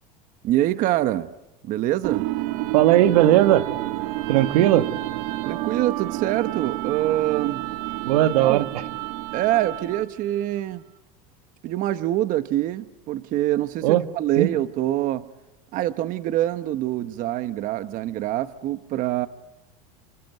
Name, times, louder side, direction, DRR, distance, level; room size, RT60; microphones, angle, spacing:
voice 1, 0.4-1.3 1.6-2.3 5.4-7.6 8.4-8.7 9.3-10.8 11.6-15.2 15.7-19.3, right 14 dB, 45° right, 12 dB, 1.0 m, -25 dB
sound 1, 2.0-10.2, right 17 dB, 75° right, 1.3 m, -29 dB
voice 2, 2.7-3.7 4.3-4.9 8.0-8.8 13.8-14.0 14.4-14.5, right 13 dB, 90° right, 10 dB, 1.5 m, -18 dB
29.0 x 20.5 x 9.3 m, 1.0 s
supercardioid pair, 140°, 19 cm